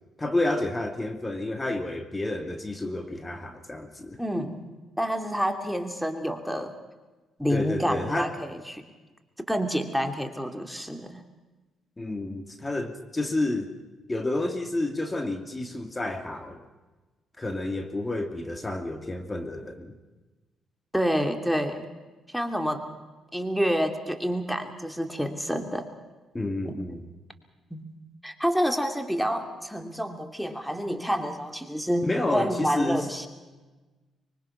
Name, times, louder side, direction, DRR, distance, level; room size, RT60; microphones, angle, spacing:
voice 1, 0.2-4.2 7.5-8.3 12.0-13.7 14.1-16.6 17.4-19.9 26.3-27.0 32.0-33.1, left 2 dB, 20° left, 6 dB, 2.6 m, -30 dB
voice 2, 4.2-4.7 5.0-6.7 7.4-8.8 9.5-11.2 20.9-21.9 22.3-22.9 23.3-25.9 26.6-27.0 27.7-27.9 28.2-33.3, equal, ahead, 6 dB, 2.7 m, -28 dB
24.5 x 23.5 x 5.9 m, 1.2 s
supercardioid pair, 60°, 0 cm